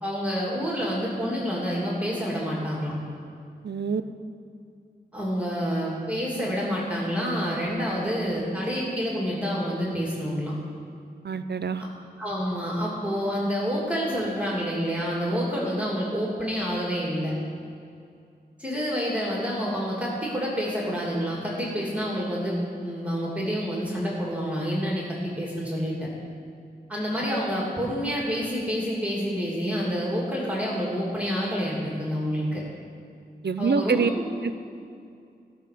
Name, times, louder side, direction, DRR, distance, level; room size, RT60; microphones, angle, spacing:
voice 1, 0.0-2.9 5.1-10.5 11.8-11.9 12.2-17.3 18.6-26.1 26.9-32.6 33.6-34.3, equal, 10° right, -5 dB, 2.8 m, -28 dB
voice 2, 3.6-4.0 11.2-11.8 33.4-34.1, right 5 dB, 80° right, 11 dB, 0.5 m, -25 dB
16.5 x 5.8 x 6.7 m, 2.4 s
wide cardioid pair, 70°, 17 cm